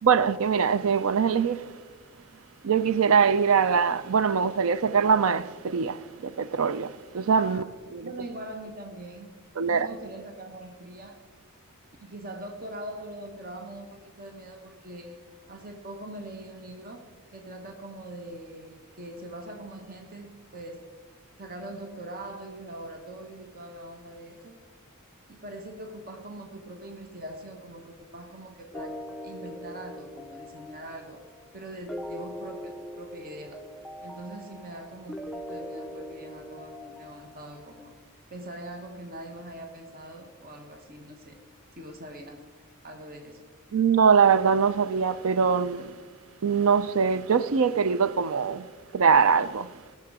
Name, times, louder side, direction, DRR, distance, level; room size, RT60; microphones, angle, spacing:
voice 1, 0.0-1.7 2.6-7.6 7.9-8.1 9.6-9.9 43.7-46.0 46.4-48.7 48.9-49.7, right 6 dB, 70° right, 0.5 m, -23 dB
voice 2, 8.0-9.3 9.7-11.2 12.0-15.2 15.5-17.1 17.3-20.9 21.4-24.6 25.3-29.0 29.2-31.2 31.5-33.6 34.0-37.9 38.3-41.4 41.8-42.5 42.8-43.4, right 1 dB, 40° right, 1.2 m, -42 dB
sound 1, 28.7-37.9, left 1 dB, ahead, 0.4 m, -41 dB
18.0 x 6.8 x 4.8 m
head